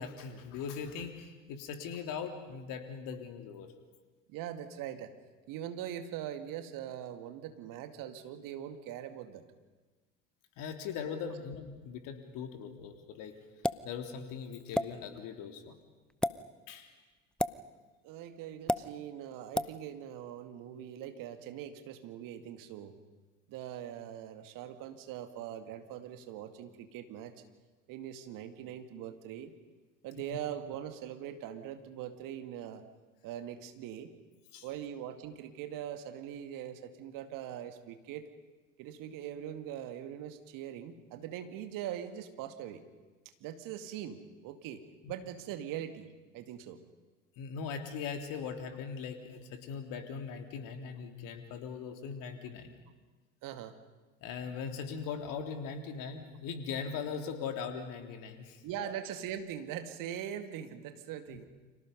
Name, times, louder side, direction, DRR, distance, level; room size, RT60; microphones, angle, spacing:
voice 1, 0.0-3.7 10.6-13.4 13.8-15.7 16.7-16.9 30.3-30.4 34.5-34.7 45.0-45.1 47.4-52.7 54.2-59.0 61.3-61.4, left 6 dB, 55° left, 5 dB, 3.5 m, -40 dB
voice 2, 4.3-5.1 5.5-9.4 11.2-11.3 18.0-23.0 23.5-27.3 27.9-29.5 30.0-32.8 33.2-34.1 34.6-38.3 38.8-42.8 43.4-46.1 46.3-46.8 53.4-53.8 58.6-61.5, right 10 dB, 55° right, 8 dB, 2.4 m, -42 dB
sound 1, 13.6-13.9 14.7-14.9 16.1-16.3 17.4-17.6 18.7-18.8 19.5-19.7, left 1 dB, ahead, 0.7 m, -29 dB
30.0 x 26.0 x 5.4 m, 1.3 s
figure-of-eight pair, 65°, 38 cm